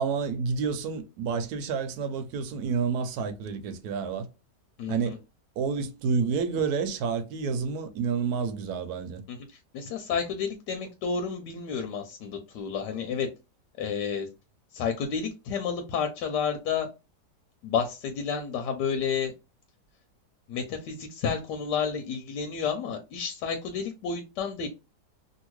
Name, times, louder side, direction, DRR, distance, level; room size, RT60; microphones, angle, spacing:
voice 1, 0.0-4.3 4.9-5.2 5.6-9.2, right 5 dB, 70° right, 1.1 m, -29 dB
voice 2, 4.8-5.2 9.3-13.3 13.8-14.3 14.7-16.9 17.6-19.3 20.5-24.7, left 6 dB, 85° left, 1.2 m, -31 dB
2.8 x 2.7 x 3.0 m
omnidirectional pair, 1.8 m